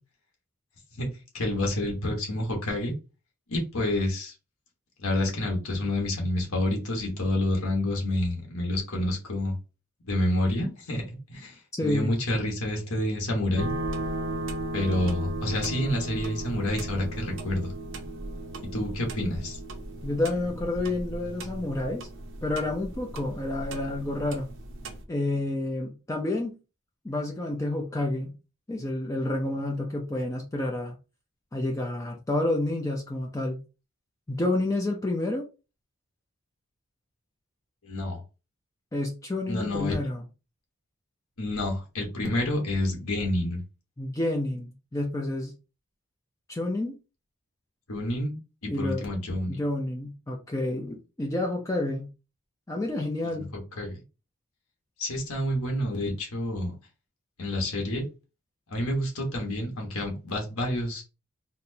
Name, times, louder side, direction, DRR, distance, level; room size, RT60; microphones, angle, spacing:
voice 1, 1.3-2.9 3.5-4.3 5.0-9.6 10.0-13.7 14.7-17.7 18.7-19.6 37.8-38.2 39.5-40.0 41.4-43.6 47.9-48.4 48.8-49.6 53.4-54.0 55.0-56.7 57.4-58.1 58.7-61.0, left 1 dB, 80° left, 1.2 m, -28 dB
voice 2, 11.8-12.2 20.0-22.1 22.4-24.5 25.1-26.6 27.0-28.3 28.7-31.0 31.5-33.6 34.3-35.5 38.9-40.2 44.0-45.5 46.5-47.0 48.7-49.1 49.5-52.1 52.7-53.5, left 2 dB, 15° left, 0.4 m, -29 dB
sound 1, 13.6-25.0, right 1 dB, 55° right, 0.6 m, -36 dB
4.1 x 2.1 x 2.6 m
head